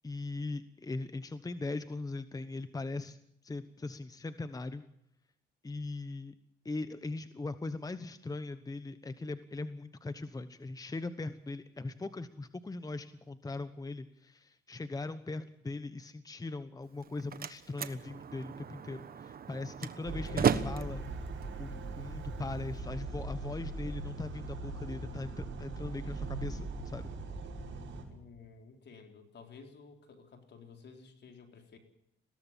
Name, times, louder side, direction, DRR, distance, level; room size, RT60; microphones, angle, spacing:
voice 1, 0.0-3.2 3.4-4.8 5.6-6.3 6.6-21.1 21.6-27.1, left 3 dB, 20° left, 12 dB, 1.1 m, -40 dB
Slam, 16.8-22.8, right 7 dB, 50° right, 1.3 m, -36 dB
sound 1, 20.0-28.0, right 3 dB, 70° right, 6.2 m, -40 dB
voice 2, 28.1-31.8, left 5 dB, 60° left, 4 dB, 4.0 m, -53 dB
21.0 x 17.5 x 7.4 m, 0.74 s
cardioid pair, 90°, 20 cm